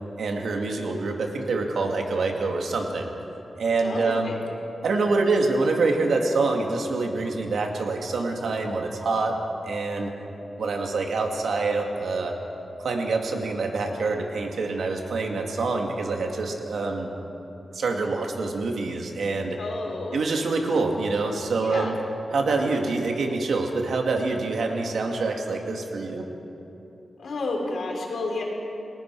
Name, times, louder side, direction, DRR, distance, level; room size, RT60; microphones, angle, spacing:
voice 1, 0.2-3.1 3.6-4.3 4.8-9.4 9.6-10.1 10.6-12.3 12.8-17.1 17.7-19.6 20.1-22.0 22.3-26.3, right 3 dB, 90° right, 2 dB, 2.3 m, -26 dB
voice 2, 3.8-4.4 19.6-20.2 21.6-21.9 27.2-28.4, left 3 dB, 75° left, 0 dB, 4.1 m, -30 dB
30.0 x 19.5 x 4.8 m, 2.9 s
wide cardioid pair, 165°, 0 cm